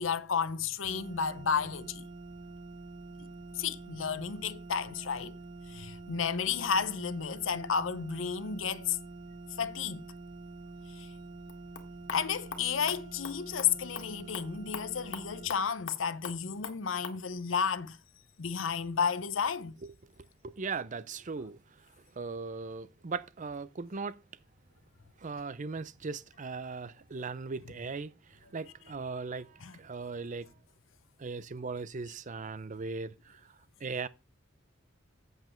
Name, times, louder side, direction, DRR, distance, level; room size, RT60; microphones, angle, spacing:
voice 1, 0.0-2.1 3.2-3.3 3.6-5.3 5.7-9.0 9.6-10.0 10.9-11.1 12.1-18.0 18.4-19.8 29.6-29.7, left 6 dB, 85° left, 0.7 m, -32 dB
sound 1, 0.8-15.5, right 2 dB, 65° right, 1.5 m, -46 dB
sound 2, 11.4-17.2, left 5 dB, 65° left, 1.7 m, -45 dB
voice 2, 20.4-21.6 22.2-24.2 25.2-30.5 31.2-33.4 33.8-34.1, right 4 dB, 40° right, 0.6 m, -38 dB
8.1 x 7.7 x 4.4 m
head